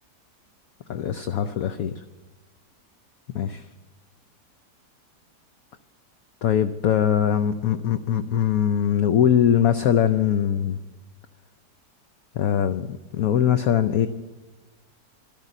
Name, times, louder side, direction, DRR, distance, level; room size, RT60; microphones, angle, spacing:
voice 1, 0.9-1.9 3.3-3.6 6.4-10.8 12.4-14.1, left 9 dB, 65° left, 10 dB, 1.0 m, -22 dB
13.0 x 12.5 x 9.0 m, 1.2 s
omnidirectional pair, 1.8 m